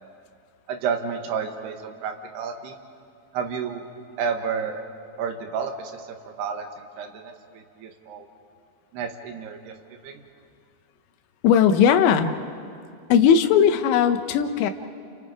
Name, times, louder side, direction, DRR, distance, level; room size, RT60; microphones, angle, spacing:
voice 1, 0.7-2.8 3.3-3.8 4.2-4.8 5.2-8.3 8.9-10.2, right 6 dB, 70° right, 4 dB, 3.2 m, -31 dB
voice 2, 11.4-12.3 13.1-14.7, left 8 dB, 80° left, 8 dB, 3.2 m, -18 dB
30.0 x 29.5 x 4.9 m, 2.4 s
omnidirectional pair, 5.3 m